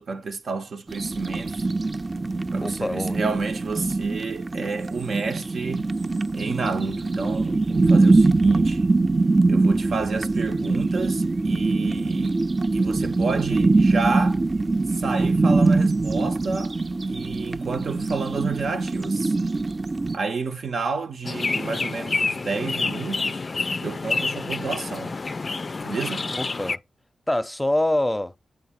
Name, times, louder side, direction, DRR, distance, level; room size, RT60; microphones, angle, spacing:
voice 1, 0.0-1.7 2.5-5.9 6.3-8.9 9.5-12.4 12.7-14.4 14.9-16.8 17.1-19.3 20.1-23.4 23.8-25.2 25.8-26.3, right 4 dB, 65° right, 0.7 m, -30 dB
sound 1, 0.9-20.2, right 3 dB, 40° right, 0.3 m, -23 dB
voice 2, 2.6-3.2 26.3-26.8 27.3-28.3, left 1 dB, 10° left, 0.6 m, -25 dB
sound 2, 21.2-26.8, left 3 dB, 45° left, 0.3 m, -28 dB
8.5 x 3.8 x 4.3 m
supercardioid pair, 40°, 0 cm